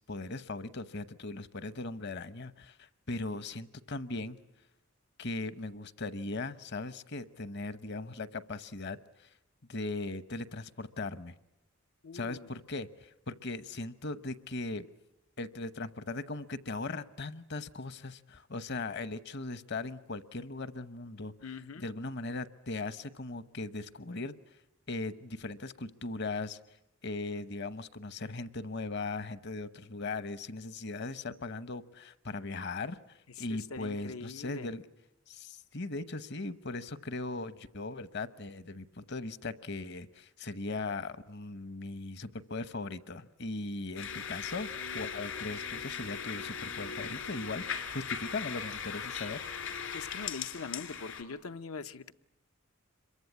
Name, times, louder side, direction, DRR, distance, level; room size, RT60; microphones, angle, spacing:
voice 1, 0.0-4.4 5.2-9.3 9.7-11.3 12.1-14.8 15.4-21.3 21.8-24.3 24.9-26.6 27.0-34.8 35.3-44.7 44.9-49.4, left 3 dB, 55° left, 0.9 m, -39 dB
voice 2, 12.0-12.5 21.4-21.9 33.3-34.7 49.9-52.1, left 4 dB, 90° left, 0.9 m, -43 dB
sound 1, 44.0-51.2, left 7 dB, 70° left, 2.6 m, -39 dB
26.5 x 23.0 x 8.5 m
head